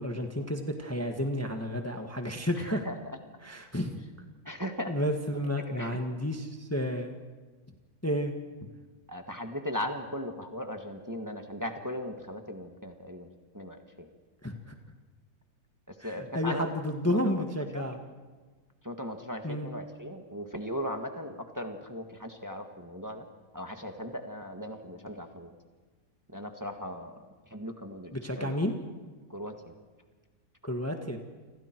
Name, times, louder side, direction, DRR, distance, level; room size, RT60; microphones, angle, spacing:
voice 1, 0.0-2.8 3.4-4.0 4.9-7.1 8.0-8.3 14.4-14.7 16.0-18.0 19.4-19.7 28.1-28.8 30.6-31.2, equal, 10° left, 4 dB, 1.5 m, -31 dB
voice 2, 2.5-3.2 4.4-4.9 5.7-5.9 9.1-13.3 13.5-14.1 15.9-16.7 17.1-17.4 17.7-17.8 18.8-23.3 23.5-25.6 26.3-27.1 27.4-28.5 29.3-29.7, equal, 15° right, 4 dB, 1.6 m, -38 dB
29.0 x 26.0 x 4.6 m, 1.4 s
omnidirectional pair, 1.6 m